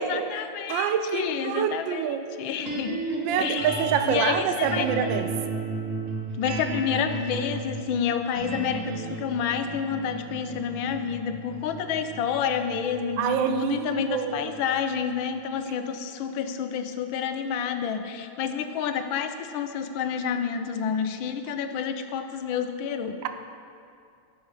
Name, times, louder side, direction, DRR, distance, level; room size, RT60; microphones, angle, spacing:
voice 1, 0.0-3.0 3.4-4.9 6.4-23.2, left 7 dB, 70° left, 8 dB, 1.4 m, -29 dB
voice 2, 0.7-2.3 3.2-5.3 13.2-14.5, right 8 dB, 75° right, 8 dB, 1.3 m, -26 dB
sound 1, 2.6-14.9, right 3 dB, 40° right, 1.6 m, -34 dB
15.0 x 6.9 x 4.9 m, 2.5 s
omnidirectional pair, 2.3 m